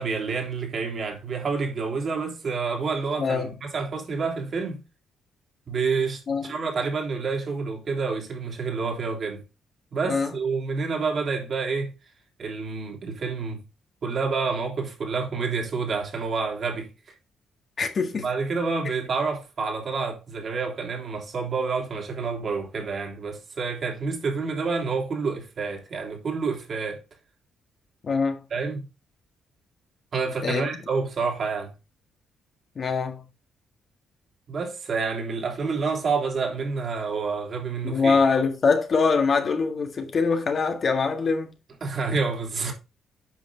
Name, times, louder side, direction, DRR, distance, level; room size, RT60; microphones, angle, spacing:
voice 1, 0.0-4.8 5.7-9.4 9.9-11.9 12.4-13.6 14.0-16.9 18.2-27.0 28.5-28.8 30.1-31.7 34.5-38.2 41.8-42.7, right 4 dB, 50° right, 3.1 m, -28 dB
voice 2, 3.2-3.5 6.3-6.5 10.1-10.3 17.8-18.3 28.0-28.4 30.4-30.6 32.7-33.2 37.8-41.5, left 4 dB, 45° left, 1.6 m, -23 dB
9.0 x 5.5 x 3.8 m
cardioid pair, 90°, 0 cm